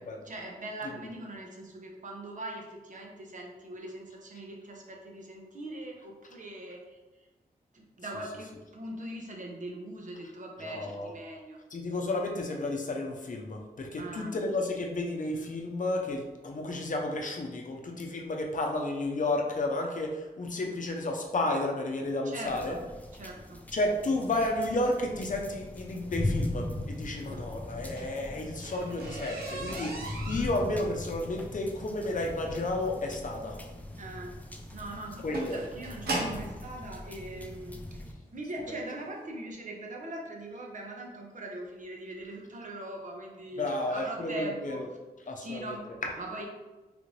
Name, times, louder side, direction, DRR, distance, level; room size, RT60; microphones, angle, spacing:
voice 1, 0.2-7.0 7.7-11.6 14.0-14.4 22.2-22.8 23.1-23.6 27.2-27.5 34.0-34.4 34.7-37.8 38.3-44.8 45.4-45.9 46.2-46.5, right 1 dB, 55° right, 0 dB, 0.8 m, -41 dB
voice 2, 10.6-11.1 11.7-22.8 23.7-33.6 35.2-35.6 43.6-44.9 45.3-45.7 46.0-46.1, left 2 dB, 55° left, 2 dB, 0.6 m, -32 dB
sound 1, 22.4-38.1, left 1 dB, 10° left, 0.5 m, -39 dB
sound 2, 27.7-36.6 37.5-37.6 38.1-38.3 38.6-38.7 39.1-39.2, right 2 dB, 85° right, 0.7 m, -38 dB
3.3 x 2.5 x 3.1 m, 1.2 s
cardioid pair, 45°, 16 cm